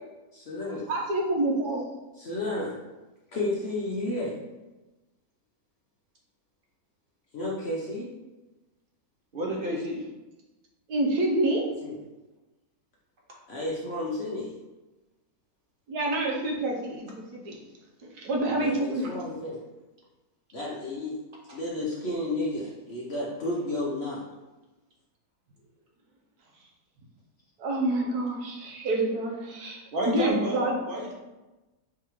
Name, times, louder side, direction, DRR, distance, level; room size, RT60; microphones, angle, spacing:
voice 1, 0.3-0.8 2.2-2.8 3.3-4.4 7.3-8.1 11.8-12.0 13.5-14.5 18.5-19.6 20.5-21.1 21.5-24.3, left 1 dB, 55° left, -4 dB, 0.8 m, -32 dB
voice 2, 0.9-1.8 10.9-11.6 15.9-17.6 18.1-19.1 27.6-30.8, right 1 dB, 80° right, -1 dB, 1.4 m, -27 dB
voice 3, 9.3-10.0 21.5-21.6 29.9-31.1, equal, 45° right, -2 dB, 0.8 m, -30 dB
4.8 x 3.5 x 3.1 m, 1.1 s
omnidirectional pair, 1.7 m